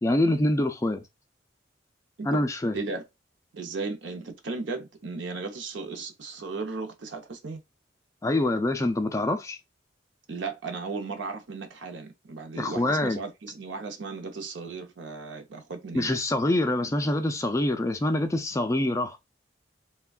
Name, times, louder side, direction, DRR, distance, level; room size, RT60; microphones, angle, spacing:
voice 1, 0.0-1.0 2.3-2.7 8.2-9.6 12.6-13.2 15.9-19.2, left 1 dB, 15° left, 0.3 m, -25 dB
voice 2, 3.5-7.6 10.3-16.1, right 4 dB, 80° right, 0.6 m, -36 dB
3.4 x 2.2 x 2.3 m
head